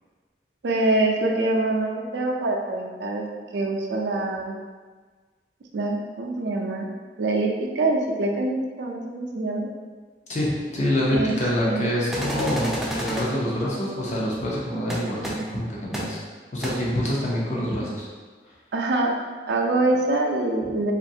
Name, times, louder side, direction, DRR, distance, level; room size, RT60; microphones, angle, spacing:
voice 1, 0.6-3.3 3.5-4.5 5.7-6.8 7.2-7.5 7.8-9.7 11.1-11.3 11.6-11.9 18.7-19.1 19.5-20.9, right 2 dB, 80° right, 1 dB, 0.4 m, -24 dB
voice 2, 10.3-16.2 16.5-18.1, equal, 40° left, -5 dB, 0.7 m, -26 dB
sound 1, 12.1-13.3 14.9-15.0 15.2-15.3 15.9-16.0 16.6-16.7, equal, ahead, 0.3 m, -30 dB
3.1 x 2.5 x 2.7 m, 1.5 s
head